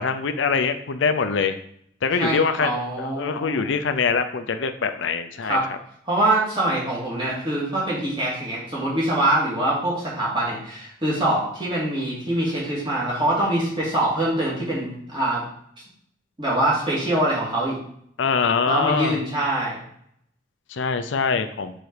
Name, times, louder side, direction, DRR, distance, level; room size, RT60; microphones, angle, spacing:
voice 1, 0.0-1.6 2.0-5.8 18.2-19.2 20.7-21.7, left 5 dB, 75° left, 9 dB, 0.5 m, -24 dB
voice 2, 2.2-3.7 5.4-5.7 6.1-15.4 16.4-17.7 18.7-19.8, right 1 dB, 25° right, -6 dB, 2.4 m, -24 dB
6.5 x 4.0 x 4.8 m, 0.68 s
head